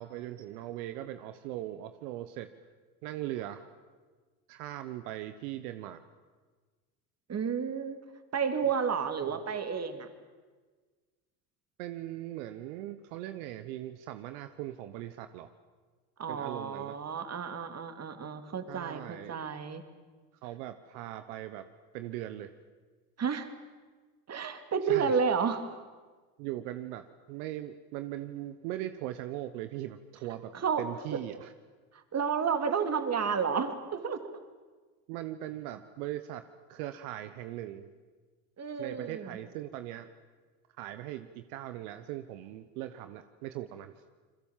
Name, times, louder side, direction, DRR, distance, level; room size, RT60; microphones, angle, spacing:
voice 1, 0.0-2.5 3.0-3.7 4.5-6.0 9.2-9.4 11.8-15.5 16.3-17.0 18.7-19.5 20.4-21.7 21.9-22.5 24.8-25.2 26.4-30.5 30.8-31.5 35.1-36.4 36.7-37.9 38.8-40.1 40.8-43.9, right 13 dB, 75° right, 10 dB, 1.2 m, -40 dB
voice 2, 7.3-8.0 8.3-10.1 16.2-19.8 23.2-23.5 24.3-25.6 30.6-30.8 31.1-31.2 32.1-34.2 38.6-39.4, right 6 dB, 35° right, 8 dB, 3.0 m, -31 dB
29.0 x 22.0 x 7.4 m, 1.4 s
hypercardioid pair, 80°, 44 cm